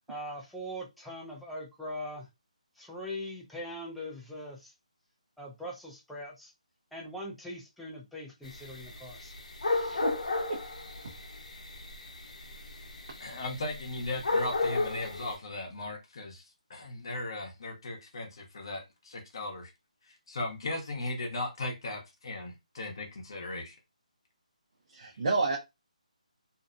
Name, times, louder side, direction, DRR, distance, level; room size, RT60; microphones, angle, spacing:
voice 1, 0.1-2.3 2.8-4.7 5.4-6.5 6.9-9.3 9.6-10.0, equal, ahead, -4 dB, 0.3 m, -41 dB
sound 1, 8.4-15.4, left 3 dB, 70° left, 0.8 m, -34 dB
voice 2, 13.2-16.4 16.7-19.7 20.1-23.7, left 2 dB, 40° left, 2 dB, 0.8 m, -37 dB
voice 3, 24.9-25.6, right 3 dB, 45° right, -2 dB, 0.6 m, -29 dB
2.6 x 2.1 x 2.5 m, 0.22 s
hypercardioid pair, 175°, 4 cm